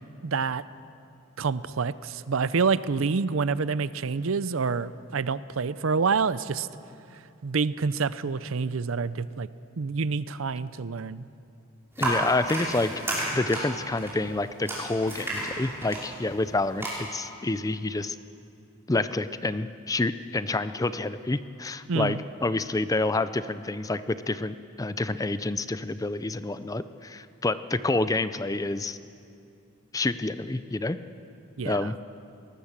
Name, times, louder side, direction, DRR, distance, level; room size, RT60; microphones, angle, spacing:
voice 1, 0.2-0.6 1.4-6.7 7.4-9.5 9.8-11.2 21.9-22.2 31.6-31.9, right 5 dB, 65° right, 16 dB, 0.6 m, -27 dB
voice 2, 12.0-12.9 13.3-18.2 18.9-29.0 29.9-31.0 31.7-32.0, left 2 dB, 15° left, 13 dB, 0.5 m, -28 dB
Aluminum metal walker cane grabbing handling, 12.0-16.9, right 1 dB, 10° right, 5.5 m, -32 dB
21.5 x 19.0 x 7.4 m, 2.6 s
head